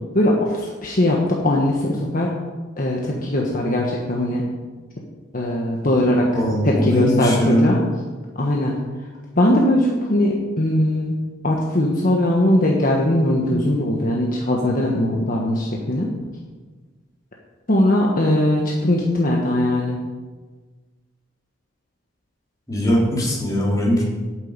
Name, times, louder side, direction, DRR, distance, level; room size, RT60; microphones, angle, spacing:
voice 1, 0.0-2.4 2.8-4.4 5.3-6.3 6.6-7.8 8.4-8.7 9.3-11.2 11.4-16.1 17.7-20.0, left 1 dB, 45° left, -2 dB, 1.4 m, -20 dB
voice 2, 6.3-7.8 22.7-24.0, equal, 20° left, -4 dB, 3.5 m, -20 dB
9.3 x 7.6 x 8.9 m, 1.3 s
head